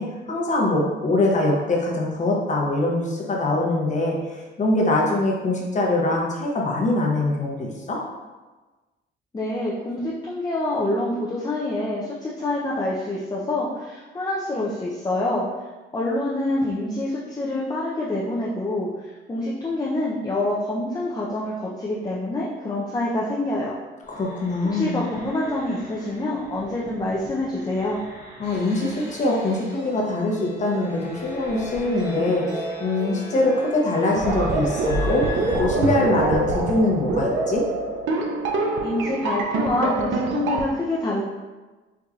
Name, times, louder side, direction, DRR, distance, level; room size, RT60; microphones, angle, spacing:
voice 1, 0.0-8.0 24.1-25.0 28.4-32.5 32.8-37.6, left 2 dB, 40° left, -2 dB, 0.9 m, -23 dB
voice 2, 9.3-15.5 15.9-18.9 19.3-23.7 24.7-28.0 38.8-41.2, left 1 dB, 20° left, -5 dB, 0.5 m, -26 dB
sound 1, 24.0-35.6, equal, 15° right, 1.1 m, -38 dB
sound 2, 34.1-40.7, right 2 dB, 80° right, 0.5 m, -24 dB
4.6 x 2.6 x 2.4 m, 1.2 s
cardioid pair, 90°, 20 cm